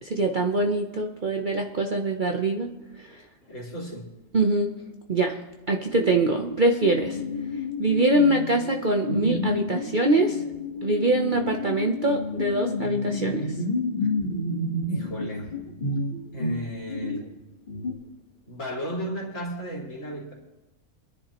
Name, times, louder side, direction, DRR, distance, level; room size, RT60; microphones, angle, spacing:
voice 1, 0.0-3.1 4.3-4.7 5.1-5.4 5.7-7.2 7.8-10.4 10.8-13.5, right 2 dB, 40° right, 3 dB, 0.8 m, -24 dB
voice 2, 3.4-4.1 14.0-14.1 14.9-15.5 16.3-17.3 18.5-20.3, equal, 55° left, -2 dB, 3.0 m, -34 dB
sound 1, 5.9-6.5 6.8-17.3 17.7-18.0, left 2 dB, 35° left, 1.5 m, -30 dB
26.0 x 10.5 x 3.0 m, 1.0 s
omnidirectional pair, 1.6 m